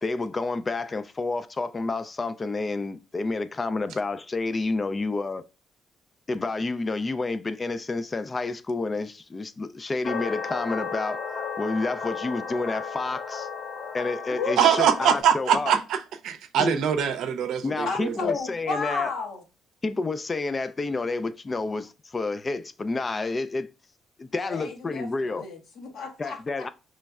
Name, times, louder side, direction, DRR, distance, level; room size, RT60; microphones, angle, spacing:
voice 1, 0.0-5.4 6.3-11.2 11.6-13.5 13.9-15.7 16.6-16.7 17.6-19.1 19.8-23.7 24.2-25.4 26.2-26.7, left 3 dB, 30° left, 0.3 m, -29 dB
sound 1, 10.0-15.2, left 6 dB, 50° left, 1.2 m, -34 dB
voice 2, 14.6-16.0 16.2-18.1, right 8 dB, 85° right, 0.5 m, -23 dB
voice 3, 17.8-19.4 24.4-26.4, left 4 dB, 75° left, 1.1 m, -32 dB
5.1 x 3.1 x 2.3 m
cardioid pair, 90°, 0 cm